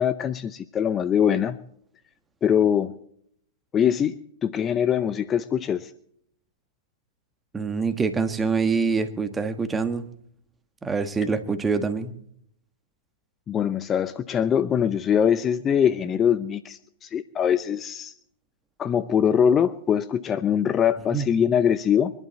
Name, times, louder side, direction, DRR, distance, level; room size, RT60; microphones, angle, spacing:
voice 1, 0.0-1.6 2.4-2.9 3.7-5.9 13.5-18.1 18.8-22.1, left 8 dB, 25° left, 14 dB, 0.7 m, -23 dB
voice 2, 7.5-10.1 10.8-12.1 21.1-21.3, right 4 dB, 15° right, 9 dB, 1.6 m, -25 dB
23.5 x 11.5 x 4.2 m, 0.69 s
hypercardioid pair, 110°, 0 cm